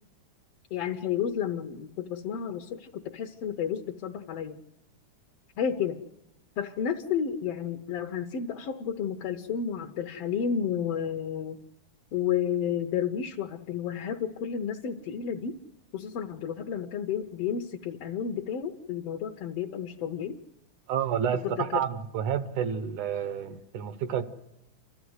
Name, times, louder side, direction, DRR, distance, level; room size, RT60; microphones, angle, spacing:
voice 1, 0.7-4.6 5.6-6.0 6.6-11.6 12.1-15.5 15.9-20.4 21.4-21.8, left 8 dB, 65° left, 1.6 m, -31 dB
voice 2, 20.9-24.2, right 8 dB, 75° right, 2.5 m, -29 dB
29.0 x 13.5 x 8.0 m
omnidirectional pair, 3.6 m